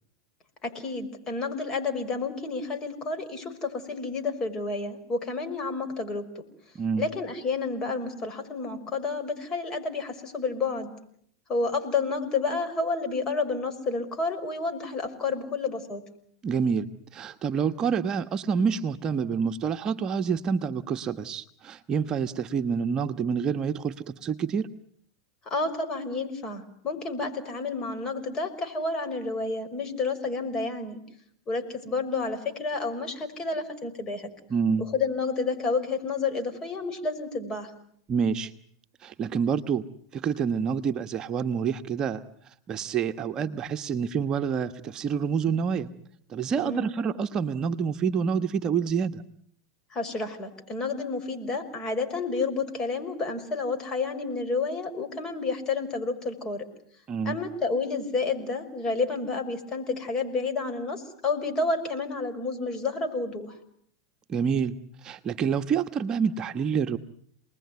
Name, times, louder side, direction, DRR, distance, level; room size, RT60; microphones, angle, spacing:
voice 1, 0.6-6.4 7.0-10.9 11.5-16.0 25.5-31.0 31.5-34.3 34.9-37.7 46.5-46.9 49.9-56.7 57.3-63.6, left 3 dB, 30° left, 7 dB, 5.8 m, -30 dB
voice 2, 16.4-24.7 34.5-34.8 38.1-38.5 39.0-39.8 40.1-42.2 42.7-45.9 46.3-49.2 57.1-57.4 64.3-64.8 65.0-67.0, right 6 dB, 30° right, 7 dB, 1.2 m, -27 dB
29.0 x 20.5 x 9.5 m, 0.67 s
hypercardioid pair, 115°, 2 cm